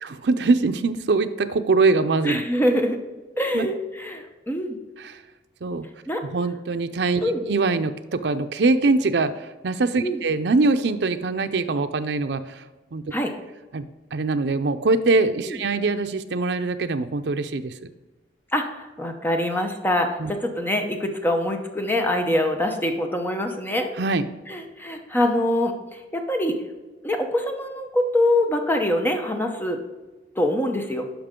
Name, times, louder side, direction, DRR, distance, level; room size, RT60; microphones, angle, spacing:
voice 1, 0.0-2.4 3.5-3.7 5.0-5.2 5.6-5.9 6.2-12.6 12.9-13.0 13.7-17.7 20.2-20.3 24.0-24.3, right 3 dB, 70° right, 9 dB, 0.5 m, -23 dB
voice 2, 2.2-3.0 3.4-4.8 6.1-6.2 7.2-7.4 10.0-10.2 13.1-13.3 15.5-15.6 18.5-23.9 24.5-26.6 27.0-29.8 30.4-31.1, left 1 dB, 10° left, 4 dB, 0.9 m, -24 dB
11.5 x 5.1 x 3.7 m, 1.2 s
head